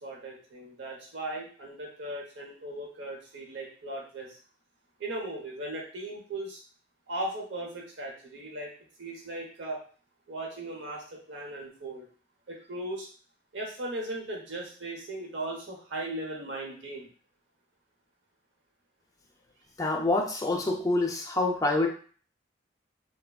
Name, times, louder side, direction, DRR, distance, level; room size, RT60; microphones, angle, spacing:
voice 1, 0.0-4.4 5.0-6.6 7.1-8.7 9.0-9.8 10.3-12.0 12.5-13.1 13.5-17.1, right 1 dB, 85° right, -1 dB, 0.9 m, -37 dB
voice 2, 19.8-21.9, left 2 dB, 20° left, 1 dB, 0.4 m, -26 dB
3.3 x 2.1 x 2.3 m, 0.42 s
head